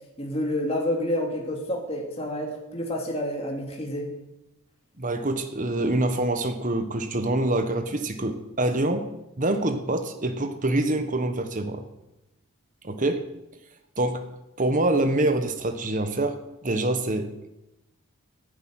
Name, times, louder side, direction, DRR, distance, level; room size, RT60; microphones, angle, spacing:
voice 1, 0.2-4.1, left 1 dB, 25° left, 0 dB, 2.8 m, -29 dB
voice 2, 5.0-9.1 9.4-11.8 12.8-13.3 14.0-14.2 14.6-17.5, right 2 dB, 35° right, 8 dB, 1.2 m, -25 dB
11.5 x 10.5 x 9.3 m, 0.93 s
head